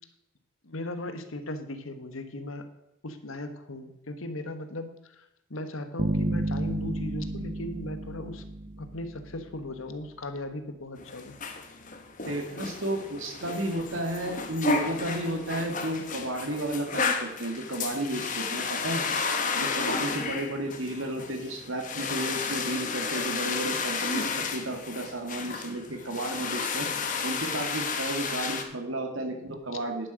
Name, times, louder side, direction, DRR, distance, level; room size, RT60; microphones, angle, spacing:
voice 1, 0.6-2.7 3.0-8.4 8.8-11.4, left 1 dB, 80° left, 9 dB, 1.3 m, -37 dB
sound 1, 6.0-9.4, right 1 dB, 40° right, 0.6 m, -31 dB
sound 2, 11.0-28.6, left 4 dB, 40° left, 1.1 m, -32 dB
voice 2, 12.3-19.1 19.5-26.9 27.2-30.1, right 1 dB, 75° right, 4 dB, 2.2 m, -33 dB
10.5 x 7.7 x 6.3 m, 0.85 s
head